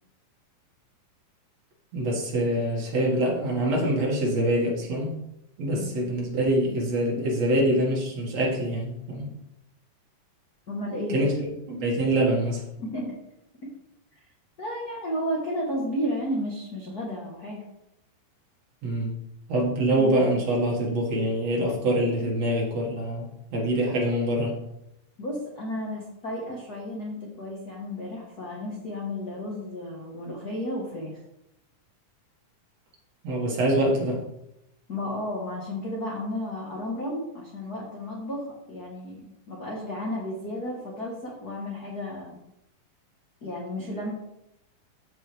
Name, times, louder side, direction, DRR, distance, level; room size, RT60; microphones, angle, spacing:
voice 1, 1.9-5.1 5.6-9.3 11.1-12.6 18.8-19.2 19.5-24.6 33.2-34.2, right 1 dB, 55° right, -3 dB, 2.7 m, -25 dB
voice 2, 10.7-11.2 12.8-13.2 14.6-17.6 25.2-31.2 34.9-42.4 43.4-44.1, left 1 dB, 60° left, -3 dB, 1.0 m, -33 dB
14.0 x 4.9 x 3.4 m, 0.86 s
omnidirectional pair, 3.9 m